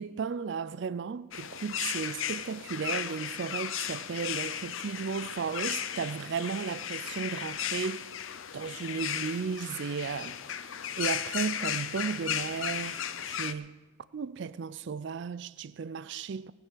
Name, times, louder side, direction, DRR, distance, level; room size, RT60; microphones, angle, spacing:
voice 1, 0.0-8.1 8.5-10.4 11.0-13.8 14.1-16.5, right 6 dB, 55° right, 0.4 m, -35 dB
sound 1, 1.3-13.5, left 9 dB, 70° left, 0.6 m, -35 dB
18.5 x 6.4 x 7.4 m
head